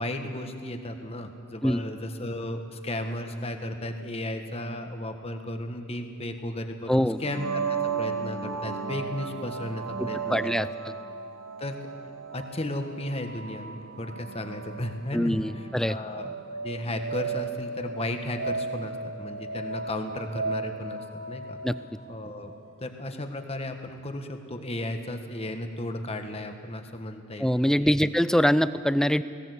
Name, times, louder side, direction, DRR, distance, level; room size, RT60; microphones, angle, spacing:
voice 1, 0.0-10.7 11.6-11.8 12.3-16.3 16.6-21.6 22.1-22.5 22.8-28.1, left 1 dB, 30° left, 6 dB, 1.5 m, -35 dB
voice 2, 6.9-7.2 10.0-10.7 15.1-16.0 21.6-21.8 27.4-29.2, equal, 5° left, 14 dB, 0.4 m, -23 dB
sound 1, 7.2-22.8, right 4 dB, 70° right, 0.9 m, -35 dB
18.5 x 18.0 x 8.2 m, 2.5 s
head